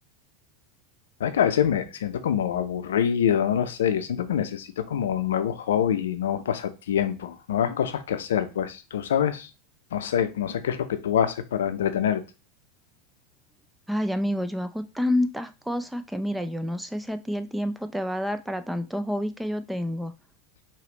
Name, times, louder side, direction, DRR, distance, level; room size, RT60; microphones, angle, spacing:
voice 1, 1.2-9.5 9.9-12.2, left 9 dB, 80° left, 0.5 m, -25 dB
voice 2, 13.9-20.1, left 1 dB, 5° right, 0.5 m, -28 dB
4.9 x 3.0 x 2.9 m
hypercardioid pair, 95°, 0 cm